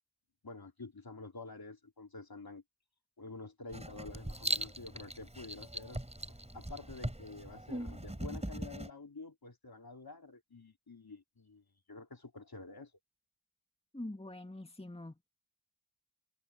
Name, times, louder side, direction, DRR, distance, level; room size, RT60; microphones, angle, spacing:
voice 1, 0.4-2.6 3.2-6.0 6.5-12.9, left 3 dB, 60° left, 3.3 m, -49 dB
Writing, 3.7-8.9, right 1 dB, 15° right, 4.5 m, -40 dB
voice 2, 13.9-15.2, left 1 dB, 15° left, 2.0 m, -44 dB
wide cardioid pair, 45°, 42 cm